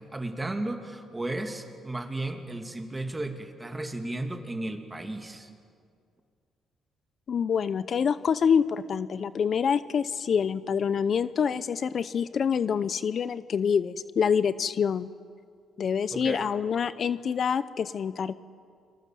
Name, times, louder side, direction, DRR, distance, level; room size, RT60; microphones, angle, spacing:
voice 1, 0.0-5.5 16.1-16.5, right 2 dB, 15° right, 5 dB, 2.7 m, -34 dB
voice 2, 7.3-15.1 15.8-18.3, left 7 dB, 55° left, 15 dB, 0.7 m, -26 dB
30.0 x 23.5 x 7.7 m, 2.3 s
cardioid pair, 90°, 0 cm